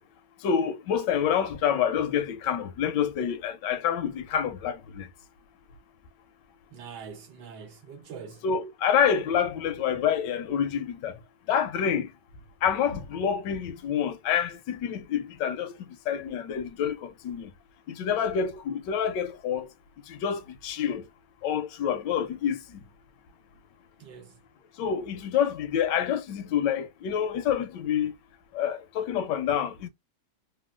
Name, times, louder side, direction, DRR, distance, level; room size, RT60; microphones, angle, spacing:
voice 1, 0.4-5.1 8.4-11.2 11.5-12.1 12.6-15.8 16.1-17.5 17.9-19.7 20.1-21.0 21.4-22.6 24.8-28.1 28.5-29.9, left 8 dB, 80° left, 1.2 m, -27 dB
voice 2, 6.7-8.5 24.0-24.4, right 6 dB, 75° right, 1.4 m, -44 dB
3.6 x 2.1 x 2.4 m
omnidirectional pair, 1.9 m